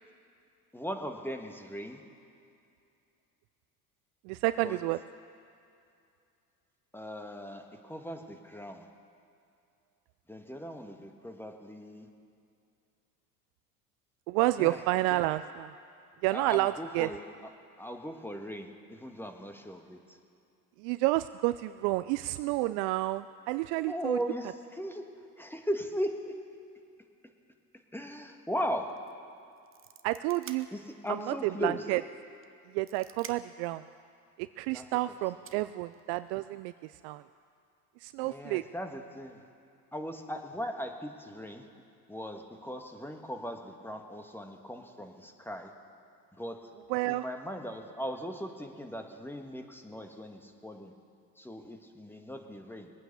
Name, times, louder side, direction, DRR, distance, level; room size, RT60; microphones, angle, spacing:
voice 1, 0.7-2.0 4.6-4.8 6.9-8.9 10.3-12.1 14.6-14.8 15.1-15.2 16.3-17.2 17.8-20.2 23.9-25.1 25.4-26.3 27.9-28.9 30.7-31.8 34.7-34.9 38.2-39.4 39.9-41.7 42.1-45.7 46.4-46.6 47.0-50.9 51.4-52.9, equal, 5° left, 4 dB, 1.6 m, -38 dB
voice 2, 4.3-5.0 14.3-15.7 16.2-17.1 20.8-24.2 30.0-30.7 31.4-32.0 32.7-33.8 34.4-37.2 38.0-38.6 46.9-47.3, right 18 dB, 60° right, 14 dB, 0.5 m, -30 dB
sound 1, 28.9-29.1 29.4-31.2 31.6-31.7 32.4-33.7 34.8-34.9 35.5-36.5, right 8 dB, 25° right, 0.9 m, -50 dB
21.0 x 9.0 x 6.8 m, 2.5 s
hypercardioid pair, 75°, 47 cm